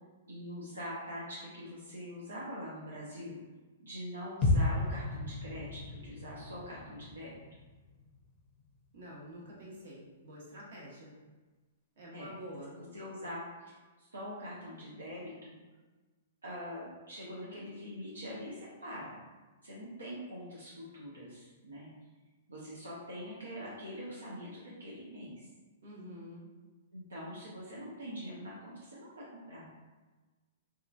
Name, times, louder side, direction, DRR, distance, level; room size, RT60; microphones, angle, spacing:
voice 1, 0.3-3.4 3.8-7.3 12.1-12.3 12.8-15.6 16.4-19.1 19.6-21.9 22.5-25.5 26.9-29.7, equal, 85° right, -7 dB, 0.7 m, -44 dB
sound 1, 4.4-8.4 8.7-8.8, left 2 dB, 25° left, 0.5 m, -33 dB
voice 2, 8.9-11.1 12.0-12.7 25.8-26.5, equal, 60° right, -5 dB, 1.0 m, -47 dB
2.8 x 2.3 x 2.4 m, 1.3 s
hypercardioid pair, 120°, 0 cm